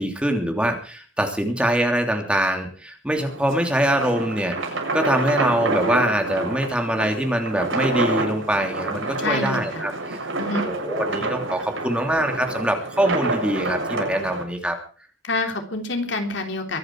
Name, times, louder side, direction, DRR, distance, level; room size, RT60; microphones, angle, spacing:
voice 1, 0.0-10.3 10.6-14.8, right 1 dB, 5° right, 4 dB, 2.9 m, -24 dB
sound 1, 3.2-14.4, right 2 dB, 80° right, 7.2 m, -28 dB
voice 2, 9.2-9.8 10.4-10.6 15.2-16.8, left 2 dB, 60° left, 5 dB, 3.5 m, -27 dB
23.5 x 10.5 x 4.7 m, 0.40 s
head